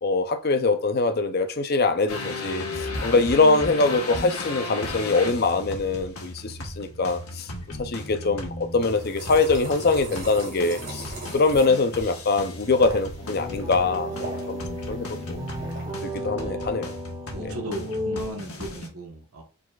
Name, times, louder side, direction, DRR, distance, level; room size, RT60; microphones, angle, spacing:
voice 1, 0.0-7.5 7.8-15.4 16.0-16.9 17.4-17.6, left 3 dB, 45° left, 0.5 m, -23 dB
sound 1, 2.1-18.9, left 2 dB, 85° left, 1.2 m, -36 dB
sound 2, 8.8-15.9, right 2 dB, 50° right, 2.2 m, -41 dB
sound 3, 13.2-18.3, equal, 20° right, 1.7 m, -34 dB
voice 2, 16.4-16.7 17.3-19.4, equal, 90° right, 1.2 m, -37 dB
4.8 x 4.0 x 2.4 m
head